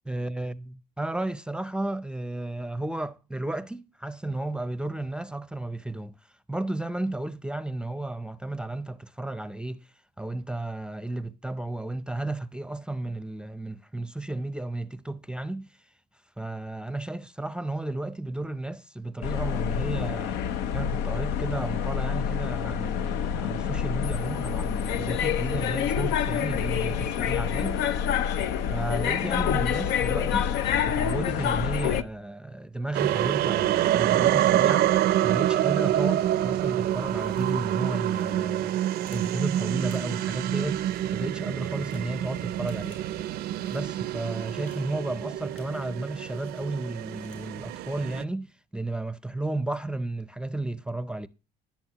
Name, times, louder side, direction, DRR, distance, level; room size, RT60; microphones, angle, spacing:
voice 1, 0.1-15.9 16.4-20.4 20.7-27.8 28.7-30.5 30.8-38.8 39.1-43.0 43.7-51.3, right 2 dB, 5° right, 0.5 m, -33 dB
sound 1, 19.2-32.0, left 8 dB, 90° left, 0.7 m, -27 dB
sound 2, 32.9-48.2, right 12 dB, 70° right, 0.5 m, -27 dB
sound 3, 37.2-37.7 38.0-39.4 39.8-40.3 40.6-41.1 41.4-42.1 42.5-43.1 43.4-43.9 44.4-46.0 46.3-47.6, left 6 dB, 50° left, 5.9 m, -58 dB
19.0 x 7.1 x 2.9 m
cardioid pair, 110°, 17 cm